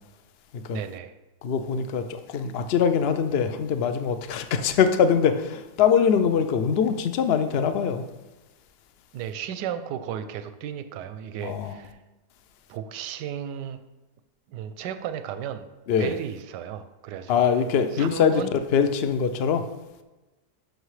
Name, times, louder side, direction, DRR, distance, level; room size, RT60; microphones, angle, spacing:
voice 1, 0.7-1.1 9.1-12.0 12.7-13.8 14.5-15.7 16.0-17.3 17.9-18.5, right 9 dB, 85° right, 10 dB, 1.2 m, -34 dB
voice 2, 1.4-8.1 11.4-11.7 15.9-16.1 17.3-18.4 18.7-19.6, left 7 dB, 70° left, 9 dB, 0.6 m, -23 dB
11.5 x 6.2 x 3.2 m, 1.1 s
omnidirectional pair, 1.8 m